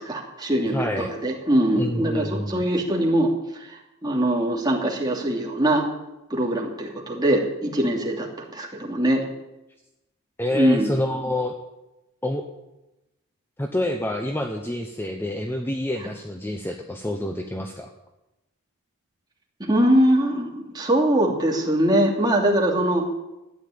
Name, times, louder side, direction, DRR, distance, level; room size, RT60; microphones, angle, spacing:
voice 1, 0.0-5.9 6.3-9.2 10.5-10.9 19.6-23.0, right 1 dB, 20° right, -1 dB, 2.6 m, -22 dB
voice 2, 0.7-1.1 1.8-2.6 10.4-11.5 12.2-12.5 13.6-17.9, left 1 dB, 10° left, 4 dB, 0.8 m, -27 dB
13.5 x 9.7 x 8.7 m, 0.97 s
head